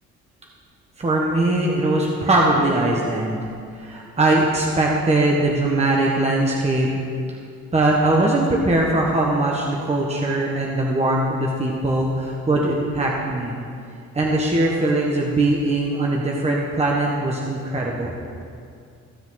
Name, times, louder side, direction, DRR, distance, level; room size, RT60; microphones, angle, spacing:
voice 1, 1.0-3.4 3.8-6.9 7.7-13.6 14.1-18.1, right 2 dB, 20° right, -2 dB, 1.2 m, -21 dB
15.0 x 6.9 x 4.0 m, 2.4 s
cardioid pair, 90°, 30 cm